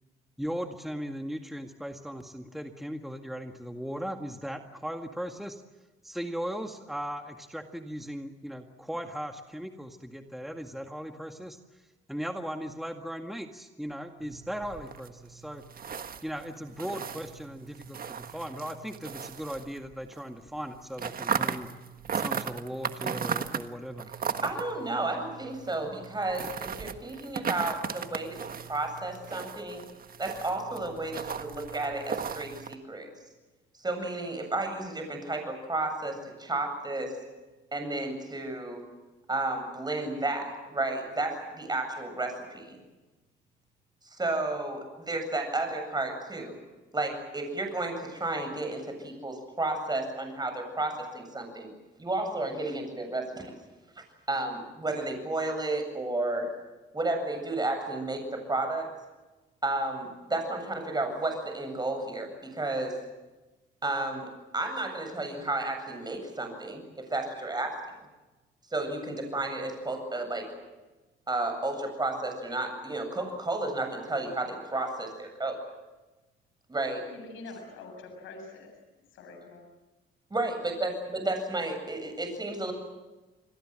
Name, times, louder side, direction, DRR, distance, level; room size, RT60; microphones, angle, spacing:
voice 1, 0.4-5.6 6.0-11.8 12.1-15.6 16.2-21.7 22.1-24.1, equal, ahead, 5 dB, 1.9 m, -38 dB
sound 1, 14.2-20.2 20.5-32.8, right 7 dB, 45° right, 1.5 m, -37 dB
voice 2, 24.4-29.8 30.2-33.1 33.8-37.1 37.7-38.8 39.3-42.8 44.1-46.6 46.9-51.7 52.0-53.5 54.0-56.5 56.9-58.9 59.6-63.0 63.8-67.8 68.7-70.5 71.3-75.6 76.7-77.0 80.3-82.7, right 2 dB, 20° right, 5 dB, 7.9 m, -32 dB
voice 3, 77.0-78.7 79.1-79.6, left 3 dB, 90° left, 4 dB, 7.4 m, -45 dB
29.0 x 21.5 x 7.7 m, 1.1 s
cardioid pair, 90°, 20 cm